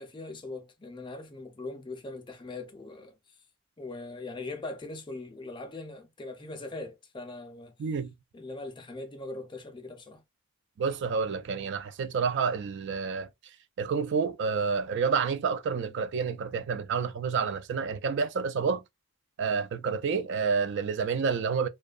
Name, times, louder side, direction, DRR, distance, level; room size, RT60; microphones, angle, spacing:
voice 1, 0.0-3.1 3.8-7.7 8.3-10.2, left 2 dB, 20° left, 0.4 m, -41 dB
voice 2, 7.8-8.1 10.8-13.3 13.8-18.8 19.4-21.7, right 5 dB, 55° right, 0.3 m, -29 dB
2.6 x 2.2 x 2.3 m
head